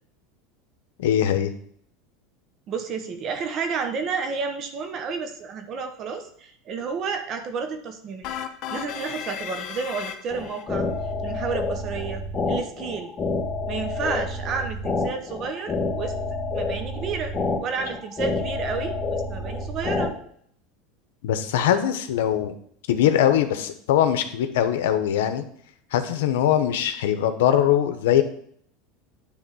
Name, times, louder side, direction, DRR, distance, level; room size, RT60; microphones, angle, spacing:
voice 1, 1.0-1.5 21.2-22.5 22.9-25.5 25.9-28.2, left 10 dB, 85° left, 9 dB, 0.9 m, -21 dB
voice 2, 2.7-8.3 8.7-10.9 11.2-13.1 13.7-16.2 16.5-17.3 17.6-20.1, right 5 dB, 40° right, 7 dB, 1.0 m, -31 dB
sound 1, 8.2-10.6, left 9 dB, 50° left, 0.9 m, -34 dB
sound 2, 10.3-20.1, left 3 dB, 20° left, 1.3 m, -28 dB
9.8 x 3.6 x 6.3 m, 0.64 s
supercardioid pair, 135°, 0 cm